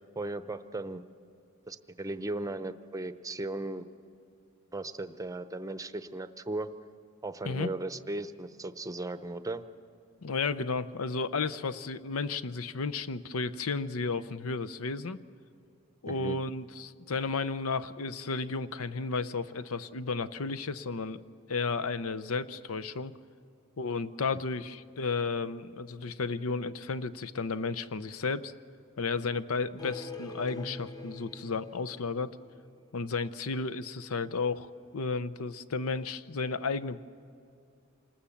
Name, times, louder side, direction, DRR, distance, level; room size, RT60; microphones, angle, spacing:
voice 1, 0.2-1.0 1.7-3.9 4.7-6.7 7.2-9.6 16.1-16.4, right 2 dB, 15° right, 11 dB, 0.7 m, -37 dB
voice 2, 10.2-15.2 16.0-21.2 21.5-23.1 23.8-28.5 29.0-32.4 32.9-37.0, left 4 dB, 85° left, 14 dB, 0.7 m, -33 dB
sound 1, 29.8-32.8, left 2 dB, 20° left, 0.8 m, -43 dB
27.0 x 20.0 x 7.2 m, 2.5 s
head